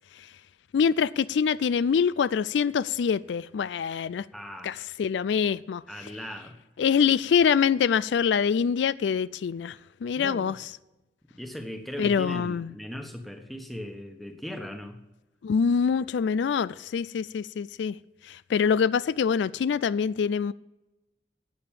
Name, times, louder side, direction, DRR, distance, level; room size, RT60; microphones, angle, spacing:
voice 1, 0.7-4.3 4.6-5.8 6.8-10.7 12.0-12.7 15.4-18.0 18.2-20.5, left 6 dB, 75° left, 0.3 m, -25 dB
voice 2, 4.3-4.8 5.9-6.6 10.2-10.5 11.3-15.0, equal, ahead, 1.3 m, -38 dB
12.0 x 8.7 x 7.4 m
head